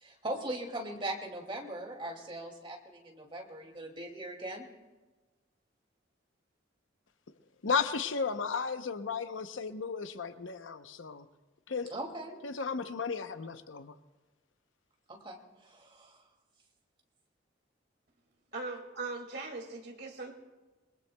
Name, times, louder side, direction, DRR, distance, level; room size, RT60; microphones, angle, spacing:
voice 1, 0.0-4.6 11.9-12.4 15.1-16.2, right 1 dB, 25° right, 2.4 m, -40 dB
voice 2, 7.6-11.3 11.7-11.9 12.4-14.0, left 5 dB, 80° left, 0.8 m, -34 dB
voice 3, 18.5-20.3, right 3 dB, 55° right, 2.2 m, -40 dB
28.5 x 21.0 x 2.3 m
head